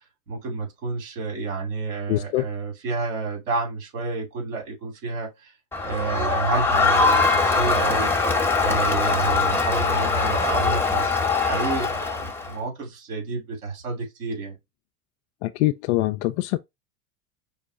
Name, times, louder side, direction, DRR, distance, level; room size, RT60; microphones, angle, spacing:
voice 1, 0.3-5.5 5.8-8.1 8.6-11.1 11.4-14.6, right 4 dB, 65° right, 3.0 m, -30 dB
voice 2, 2.1-2.4 15.4-16.6, left 17 dB, 50° left, 0.5 m, -24 dB
Crowd, 5.7-12.5, left 4 dB, 5° left, 1.1 m, -22 dB
5.4 x 2.2 x 4.2 m
figure-of-eight pair, 80°, 45 cm